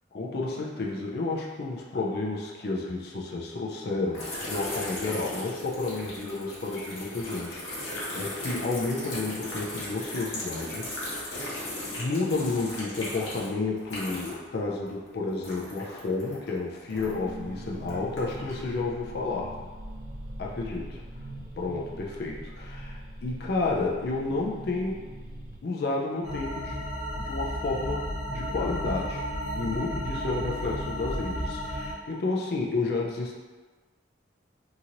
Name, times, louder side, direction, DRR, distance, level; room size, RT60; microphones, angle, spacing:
voice 1, 0.1-10.9 11.2-11.4 12.0-19.7 20.4-20.8 21.6-25.0 25.6-26.9 27.2-29.2 29.5-33.4, left 3 dB, 55° left, -2 dB, 0.4 m, -31 dB
sound 1, 4.1-14.5 14.8-17.3 17.8-18.6, left 1 dB, 90° left, 0.9 m, -37 dB
sound 2, 16.9-25.6, right 1 dB, 45° right, 0.5 m, -42 dB
sound 3, 26.2-31.9, equal, 65° right, 0.8 m, -33 dB
2.8 x 2.8 x 2.5 m, 1.3 s
head